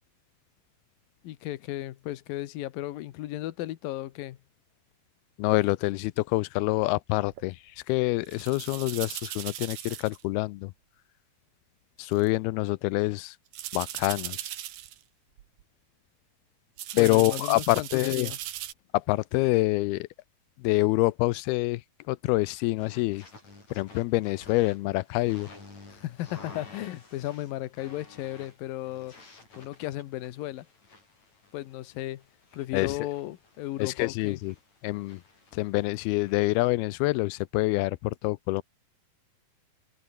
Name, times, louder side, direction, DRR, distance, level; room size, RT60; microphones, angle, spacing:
voice 1, 1.2-4.4 16.9-18.4 25.9-29.1 29.6-30.7 31.5-32.2 32.5-34.4, left 15 dB, 70° left, 2.8 m, -35 dB
voice 2, 5.4-7.6 7.9-10.7 12.0-13.4 13.7-14.5 17.0-18.3 18.9-20.1 20.6-21.8 22.1-23.2 23.7-25.5 32.7-33.0 33.8-34.5 34.8-35.2 35.5-38.6, left 20 dB, 90° left, 2.6 m, -26 dB
sound 1, 7.3-7.4 8.2-10.2 10.6-10.7 12.0-12.3 13.5-15.0 15.4-15.6 16.8-18.7, right 12 dB, 60° right, 2.4 m, -38 dB
sound 2, 22.8-36.7, left 3 dB, 45° left, 9.1 m, -52 dB
omnidirectional pair, 4.4 m